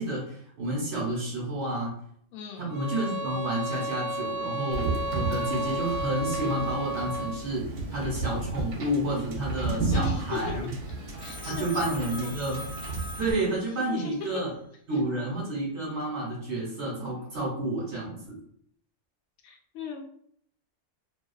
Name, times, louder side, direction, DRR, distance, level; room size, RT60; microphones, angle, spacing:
voice 1, 0.0-1.9 2.6-10.7 11.4-12.6 13.2-14.5 14.9-18.4, right 1 dB, 65° right, -5 dB, 1.2 m, -30 dB
voice 2, 2.3-2.7 9.9-10.4 11.2-12.4 13.1-13.2 13.8-14.2 14.9-15.0 19.4-20.0, left 6 dB, 80° left, 1 dB, 0.9 m, -38 dB
sound 1, 2.7-7.5, right 1 dB, 30° right, 0.4 m, -33 dB
Wind / Boat Water vehicle, 4.7-13.3, right 3 dB, 85° right, 1.0 m, -33 dB
Telephone, 11.2-14.0, left 1 dB, 50° left, 0.7 m, -42 dB
2.5 x 2.3 x 2.3 m, 0.66 s
omnidirectional pair, 1.3 m